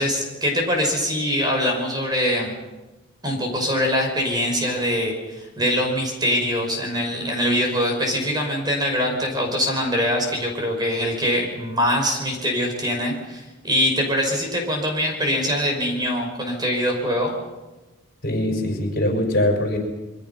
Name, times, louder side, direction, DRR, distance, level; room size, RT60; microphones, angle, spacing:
voice 1, 0.0-2.5 3.2-17.3, equal, 20° right, 2 dB, 5.6 m, -23 dB
voice 2, 18.2-19.8, left 1 dB, 55° left, 3 dB, 5.5 m, -22 dB
27.5 x 23.5 x 5.8 m, 1.1 s
head